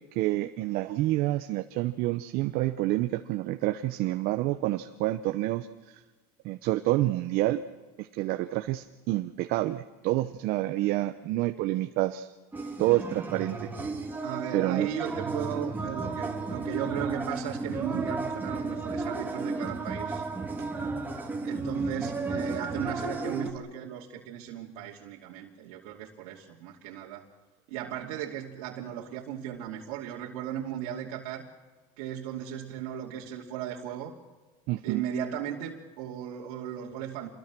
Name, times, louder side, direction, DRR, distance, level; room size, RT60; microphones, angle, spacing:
voice 1, 0.1-5.7 6.4-7.6 8.0-12.3 12.8-13.7 14.5-14.9 34.7-35.0, right 16 dB, 55° right, 7 dB, 1.0 m, -28 dB
sound 1, 12.5-23.5, right 3 dB, 10° right, 2.7 m, -33 dB
voice 2, 14.2-20.3 21.4-27.2 27.7-31.5 32.0-34.1 34.8-37.3, right 10 dB, 80° right, -3 dB, 2.7 m, -36 dB
27.5 x 22.0 x 6.2 m, 1.3 s
supercardioid pair, 140°, 18 cm